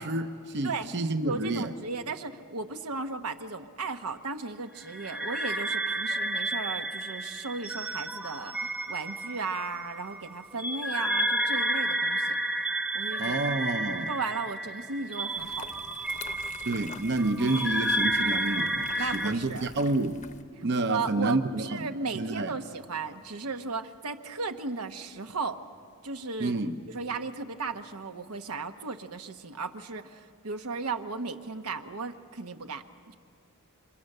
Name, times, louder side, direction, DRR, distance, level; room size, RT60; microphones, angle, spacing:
voice 1, 0.0-1.7 13.2-14.1 16.7-20.2 20.6-21.7 22.1-22.5 26.4-26.8, right 2 dB, 50° right, 0.7 m, -29 dB
voice 2, 1.2-12.4 12.9-13.4 13.8-15.7 19.0-19.7 20.6-25.6 26.0-26.5 26.9-33.2, right 4 dB, 90° right, 1.1 m, -35 dB
sound 1, 4.9-19.3, right 1 dB, 5° right, 0.6 m, -31 dB
sound 2, 15.3-20.4, left 5 dB, 35° left, 0.8 m, -46 dB
28.5 x 25.5 x 6.7 m
head